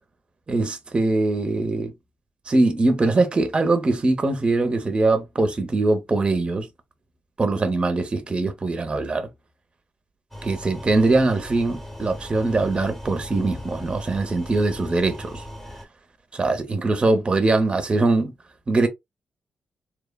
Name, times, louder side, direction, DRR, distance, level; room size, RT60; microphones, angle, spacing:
voice 1, 0.5-1.9 2.5-6.7 7.4-9.3 10.4-15.4 16.3-18.3 18.7-18.9, right 2 dB, 30° right, 0.6 m, -22 dB
sound 1, 10.3-15.9, equal, 10° left, 0.8 m, -38 dB
3.0 x 2.1 x 2.2 m
cardioid pair, 75°, 3 cm